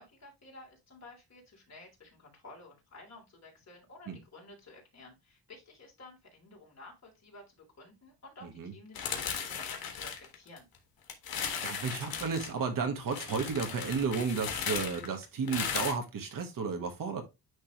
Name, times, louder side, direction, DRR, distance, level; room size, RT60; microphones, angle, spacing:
voice 1, 0.0-10.7, left 2 dB, 45° left, 3.3 m, -53 dB
voice 2, 8.4-8.7 11.6-17.2, right 5 dB, 60° right, 1.4 m, -33 dB
sound 1, 9.0-10.8 11.1-12.5 13.1-15.9, left 7 dB, 70° left, 1.5 m, -36 dB
9.5 x 3.3 x 3.0 m
cardioid pair, 110°, 37 cm